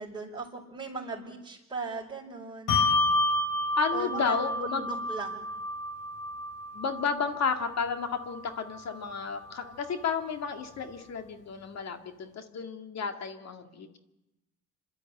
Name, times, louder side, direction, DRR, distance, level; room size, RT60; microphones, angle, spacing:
voice 1, 0.0-2.9 3.9-5.5, right 3 dB, 15° right, -8 dB, 4.8 m, -38 dB
Bell, 2.7-9.5, left 2 dB, 85° left, 3.9 m, -31 dB
voice 2, 3.8-4.9 6.7-14.0, left 5 dB, 60° left, 7 dB, 2.0 m, -32 dB
27.0 x 12.0 x 9.0 m, 0.94 s
cardioid pair, 90°, 30 cm